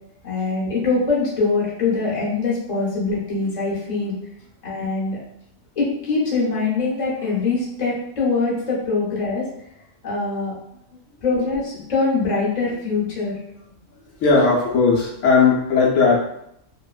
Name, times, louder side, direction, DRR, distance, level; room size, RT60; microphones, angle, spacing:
voice 1, 0.2-4.2 4.6-5.2 5.8-9.5 10.0-10.5 11.2-13.4, left 3 dB, 40° left, -7 dB, 0.9 m, -23 dB
voice 2, 14.2-16.2, left 4 dB, 75° left, -5 dB, 1.0 m, -17 dB
2.9 x 2.1 x 2.4 m, 0.76 s
omnidirectional pair, 1.3 m